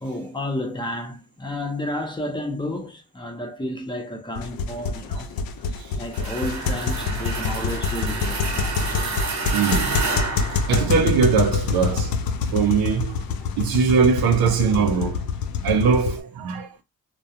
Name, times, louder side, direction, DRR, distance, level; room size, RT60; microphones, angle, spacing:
voice 1, 0.0-5.3 5.9-8.4, left 1 dB, 15° left, 0.7 m, -31 dB
sound 1, 4.4-16.2, left 5 dB, 80° left, 0.5 m, -26 dB
sound 2, 6.1-11.4, right 3 dB, 50° right, 0.9 m, -29 dB
voice 2, 9.5-12.2 12.5-15.2 15.6-16.7, right 6 dB, 90° right, 0.6 m, -22 dB
2.3 x 2.2 x 2.7 m
cardioid pair, 105°, 35 cm